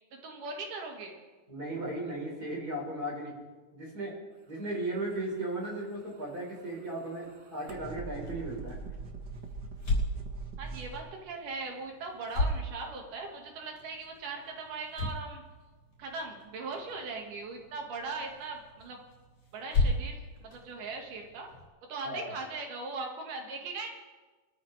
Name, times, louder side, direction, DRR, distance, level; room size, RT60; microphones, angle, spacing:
voice 1, 0.1-1.2 10.6-15.4 16.0-19.0 19.5-21.5 21.9-23.9, right 3 dB, 85° right, 2 dB, 3.3 m, -39 dB
voice 2, 1.5-3.3 3.7-4.1 4.5-8.8 22.0-22.3, right 1 dB, 30° right, -2 dB, 4.2 m, -36 dB
sound 1, 5.8-11.0, right 4 dB, 45° right, 1.5 m, -43 dB
sound 2, 8.1-21.7, left 2 dB, 50° left, 4.7 m, -37 dB
23.5 x 13.5 x 3.3 m, 1.3 s
omnidirectional pair, 3.6 m